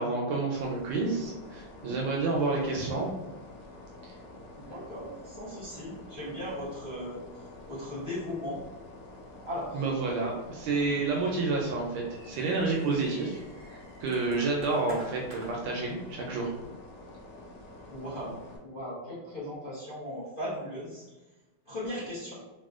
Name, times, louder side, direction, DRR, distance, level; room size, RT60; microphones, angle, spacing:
voice 1, 0.0-3.1 4.0-4.1 9.7-13.4 13.7-16.5, right 3 dB, 75° right, -1 dB, 1.1 m, -29 dB
sound 1, 0.5-18.6, left 2 dB, 85° left, 0.8 m, -48 dB
voice 2, 4.5-8.6 9.4-9.8 17.8-21.1 21.7-22.4, left 1 dB, 65° left, -10 dB, 0.5 m, -38 dB
sound 2, 4.7-5.2 5.5-5.6 5.9-6.2 6.4-6.8 7.0-7.6 8.2-8.3 8.9-9.3 10.0-10.9 11.2-15.7, right 1 dB, 40° right, 0.7 m, -50 dB
4.1 x 2.1 x 2.4 m, 1.1 s
omnidirectional pair, 2.4 m